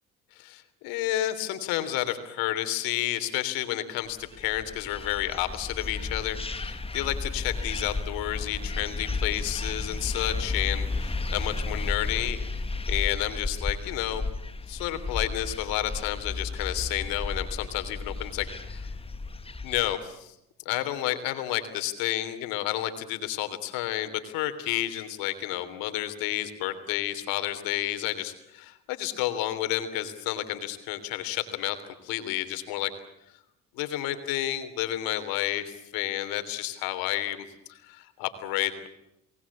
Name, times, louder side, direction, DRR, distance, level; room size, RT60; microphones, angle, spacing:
voice 1, 0.4-12.6 12.9-14.2 14.7-18.9 19.6-20.3 20.6-31.8 32.0-32.9 33.7-38.9, left 14 dB, 90° left, 9 dB, 3.3 m, -31 dB
sound 1, 4.3-19.9, left 3 dB, 15° left, 1.9 m, -33 dB
29.5 x 20.0 x 8.5 m, 0.84 s
supercardioid pair, 85°, 33 cm